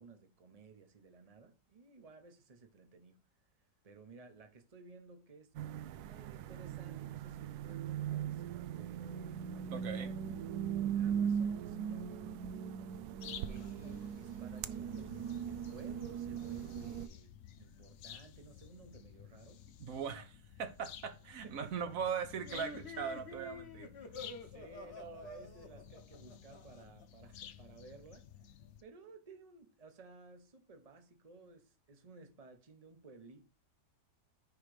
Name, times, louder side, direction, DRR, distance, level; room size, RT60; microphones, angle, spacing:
voice 1, 0.0-3.2 3.8-10.2 10.8-12.3 13.5-19.6 21.4-22.0 24.4-28.3 28.8-33.4, right 4 dB, 25° right, 1.1 m, -56 dB
sound 1, 5.5-17.1, right 8 dB, 70° right, 1.0 m, -39 dB
voice 2, 9.7-10.1 19.8-23.9, right 7 dB, 55° right, 1.4 m, -40 dB
One loud bird in forest, 13.2-28.8, left 9 dB, 65° left, 0.7 m, -53 dB
sound 2, 22.4-27.0, left 2 dB, 40° left, 1.5 m, -49 dB
9.8 x 3.3 x 4.9 m
omnidirectional pair, 1.8 m